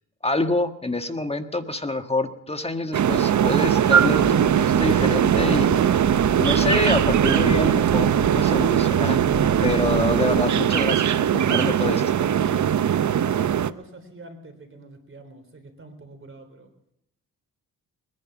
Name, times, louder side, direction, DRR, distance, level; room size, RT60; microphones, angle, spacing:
voice 1, 0.2-5.8 6.4-9.2 9.6-12.0, left 2 dB, 15° left, 7 dB, 1.5 m, -26 dB
sound 1, 2.9-13.7, right 9 dB, 55° right, 0.7 m, -20 dB
Ocean, 4.2-10.4, left 4 dB, 45° left, 1.2 m, -37 dB
voice 2, 12.2-16.7, right 2 dB, 35° right, 5 dB, 3.9 m, -43 dB
21.0 x 11.0 x 6.0 m, 0.81 s
cardioid pair, 80°, 34 cm